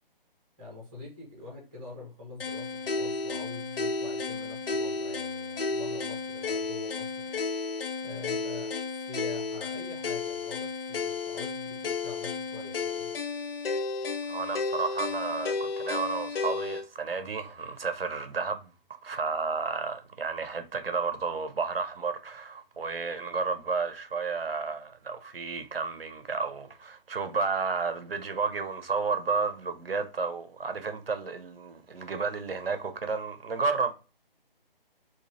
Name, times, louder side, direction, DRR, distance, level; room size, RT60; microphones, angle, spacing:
voice 1, 0.6-7.4 8.0-8.7 9.1-13.1, left 3 dB, 10° right, 0.6 m, -45 dB
sound 1, 2.4-16.8, left 4 dB, 75° left, 0.5 m, -33 dB
voice 2, 14.3-33.9, right 4 dB, 80° right, 0.7 m, -32 dB
2.7 x 2.3 x 3.0 m
figure-of-eight pair, 155°, 29 cm